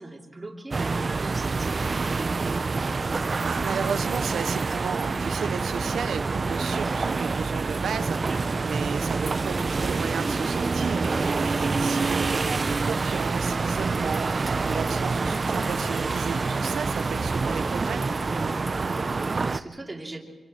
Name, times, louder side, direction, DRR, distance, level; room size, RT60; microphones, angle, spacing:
voice 1, 0.0-2.2 11.0-11.3 18.2-20.2, right 2 dB, 20° right, 0 dB, 3.0 m, -41 dB
sound 1, 0.7-19.6, right 4 dB, 35° right, 0.5 m, -27 dB
voice 2, 3.4-8.2 8.6-18.0, right 7 dB, 80° right, 9 dB, 0.6 m, -34 dB
sound 2, 7.1-19.4, equal, 15° left, 7.1 m, -43 dB
26.5 x 24.0 x 4.3 m, 1.4 s
wide cardioid pair, 130°, 0 cm